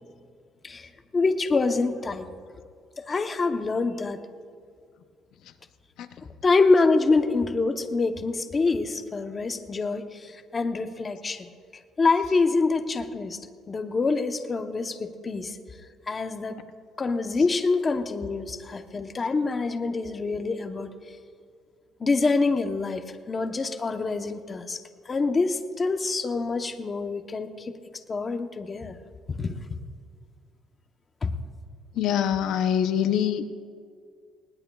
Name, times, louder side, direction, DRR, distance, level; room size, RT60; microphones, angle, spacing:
voice 1, 0.6-2.3 3.0-4.2 6.4-11.5 12.0-13.4 13.7-15.6 16.1-16.6 17.0-20.9 22.0-24.8 25.1-27.7 28.1-29.0 29.3-29.8 31.2-31.3, left 3 dB, 25° left, 7 dB, 0.8 m, -26 dB
voice 2, 32.0-33.5, left 9 dB, 70° left, 9 dB, 0.6 m, -24 dB
20.0 x 18.5 x 2.3 m, 2.1 s
cardioid pair, 140°, 0 cm